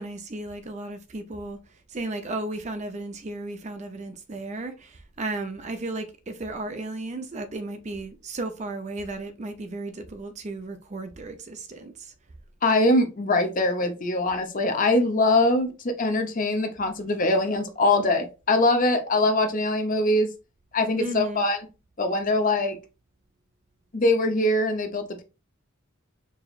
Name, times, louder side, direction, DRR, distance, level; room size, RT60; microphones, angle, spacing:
voice 1, 0.0-1.6 1.9-12.1 21.0-21.4, right 2 dB, 35° right, 0.5 m, -34 dB
voice 2, 12.6-20.3 20.7-21.6 22.0-22.8 23.9-25.2, left 2 dB, 40° left, 0.6 m, -23 dB
4.7 x 3.0 x 2.4 m
head